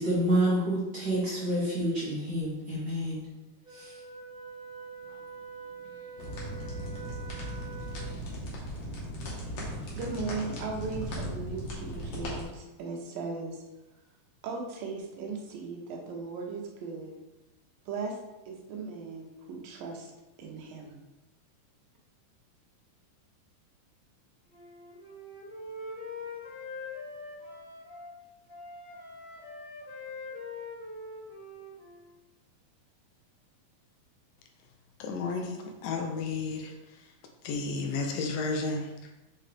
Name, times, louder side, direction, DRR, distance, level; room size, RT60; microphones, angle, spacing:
voice 1, 0.0-3.2 3.7-3.9, right 1 dB, 50° right, -8 dB, 1.3 m, -28 dB
Wind instrument woodwind instrument, 3.6-8.3, right 5 dB, 5° right, 0.4 m, -45 dB
sound 1, 6.2-12.4, equal, 55° left, 2.2 m, -37 dB
voice 2, 9.6-13.6 14.4-17.1 17.9-18.2 18.5-20.1 20.4-20.9, right 4 dB, 85° right, 1 dB, 2.7 m, -38 dB
Wind instrument woodwind instrument 2, 24.5-28.1 28.5-32.1, left 3 dB, 35° left, 1.4 m, -43 dB
voice 3, 35.0-35.6 35.8-36.7 37.4-39.1, left 3 dB, 80° left, 3 dB, 2.4 m, -32 dB
7.1 x 4.3 x 3.4 m, 1.0 s
omnidirectional pair, 4.0 m